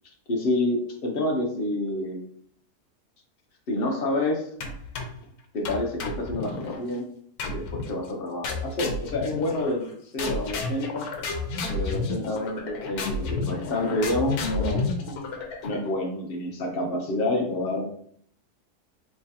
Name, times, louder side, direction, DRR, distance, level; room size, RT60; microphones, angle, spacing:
voice 1, 0.3-2.2 3.7-4.5 5.5-7.1 7.5-11.1 11.7-14.9 15.6-17.8, left 1 dB, 55° left, 1 dB, 0.7 m, -28 dB
sound 1, 4.6-5.2 5.6-6.8 7.4-7.9 8.4-9.9 10.2-15.9, left 3 dB, 75° left, 1.1 m, -31 dB
3.6 x 3.1 x 2.7 m, 0.62 s
omnidirectional pair, 1.7 m